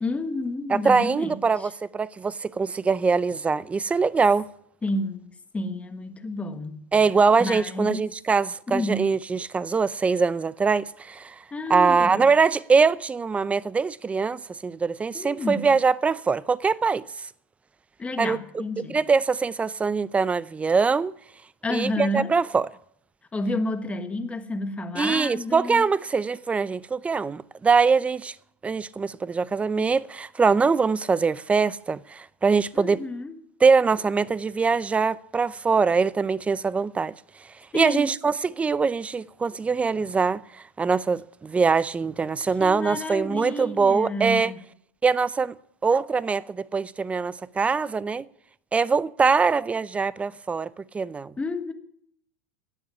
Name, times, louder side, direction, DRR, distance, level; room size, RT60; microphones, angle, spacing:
voice 1, 0.0-1.7 4.8-5.3 5.5-6.8 7.4-8.0 8.7-9.1 11.5-12.3 15.1-15.7 18.0-19.0 21.6-22.4 23.3-25.9 32.7-33.4 37.7-38.1 42.6-44.6 51.4-51.7, left 2 dB, 15° left, 1.6 m, -30 dB
voice 2, 0.7-4.5 6.9-11.4 11.7-17.0 18.2-18.4 18.9-21.1 21.7-22.7 25.0-28.3 28.6-33.0 33.6-37.1 37.7-40.4 40.8-44.5 45.0-45.5 45.8-48.3 48.7-51.3, right 5 dB, 15° right, 0.6 m, -23 dB
17.5 x 6.9 x 9.8 m
hypercardioid pair, 110°, 9 cm